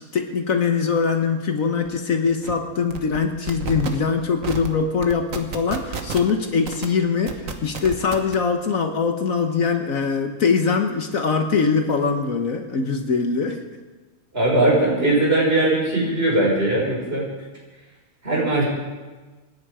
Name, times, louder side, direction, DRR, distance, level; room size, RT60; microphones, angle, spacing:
voice 1, 0.0-13.6, left 5 dB, 60° left, 5 dB, 1.5 m, -22 dB
sound 1, 1.8-2.0 2.3-2.5 2.9-3.2 3.5-3.9 4.4-4.7 5.0-6.3 6.7-6.9 7.3-8.3, right 5 dB, 60° right, 1.6 m, -30 dB
voice 2, 14.3-17.3 18.2-18.6, right 1 dB, 40° right, -4 dB, 5.7 m, -20 dB
26.0 x 10.5 x 5.0 m, 1.3 s
omnidirectional pair, 1.6 m